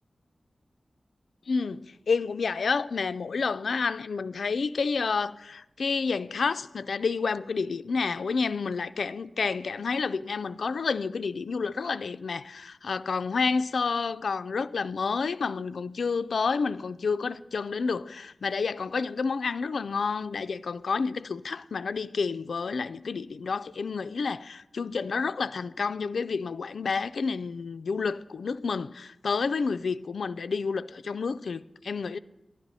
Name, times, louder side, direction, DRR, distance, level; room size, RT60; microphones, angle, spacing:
voice 1, 1.5-32.2, left 5 dB, 90° left, 0.3 m, -29 dB
11.5 x 11.0 x 4.1 m
wide cardioid pair, 95°, 0 cm